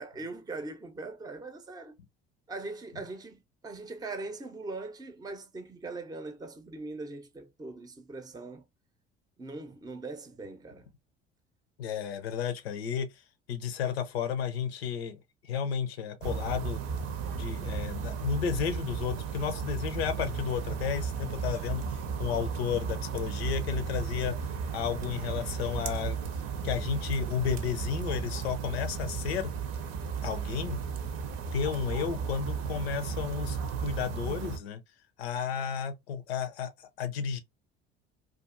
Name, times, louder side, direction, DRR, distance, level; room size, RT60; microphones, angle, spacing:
voice 1, 0.0-1.9 2.5-8.6 9.4-10.9, right 3 dB, 15° right, 0.6 m, -41 dB
voice 2, 11.8-13.1 13.5-16.8 17.3-24.4 24.7-26.2 26.6-29.5 30.2-30.8 31.5-34.8 35.2-37.4, left 7 dB, 85° left, 0.6 m, -32 dB
sound 1, 16.2-34.6, right 6 dB, 55° right, 0.6 m, -34 dB
2.4 x 2.3 x 2.5 m
hypercardioid pair, 65°, 31 cm